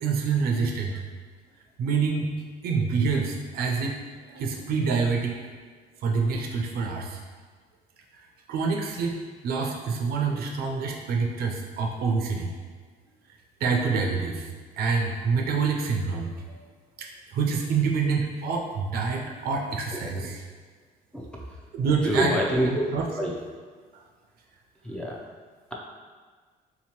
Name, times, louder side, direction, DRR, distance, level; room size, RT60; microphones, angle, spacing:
voice 1, 0.0-1.0 1.8-2.3 2.6-4.0 4.3-5.4 6.0-7.2 8.5-12.5 13.6-14.5 14.8-16.6 17.0-20.5 21.7-23.1, right 5 dB, 65° right, 1 dB, 0.5 m, -27 dB
voice 2, 22.1-22.7 23.2-23.3 24.8-25.2, right 1 dB, 5° left, -3 dB, 0.5 m, -26 dB
3.8 x 2.8 x 2.9 m, 1.5 s
cardioid pair, 110°, 17 cm